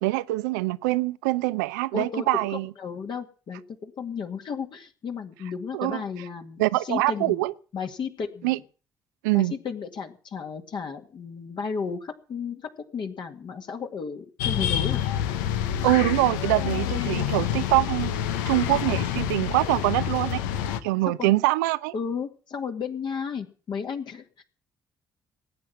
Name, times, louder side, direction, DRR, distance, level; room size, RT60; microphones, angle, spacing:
voice 1, 0.0-2.7 5.7-6.0 6.6-7.5 8.4-8.6 9.2-9.5 15.8-18.1 18.5-20.4 20.8-21.9, right 19 dB, 75° right, 0.7 m, -24 dB
voice 2, 1.9-7.4 7.7-8.6 9.3-12.6 12.9-15.0 21.0-21.3 21.9-24.4, left 6 dB, 50° left, 2.2 m, -33 dB
sound 1, 14.4-20.8, left 10 dB, 75° left, 1.1 m, -27 dB
19.0 x 9.2 x 7.4 m
figure-of-eight pair, 45°, 10 cm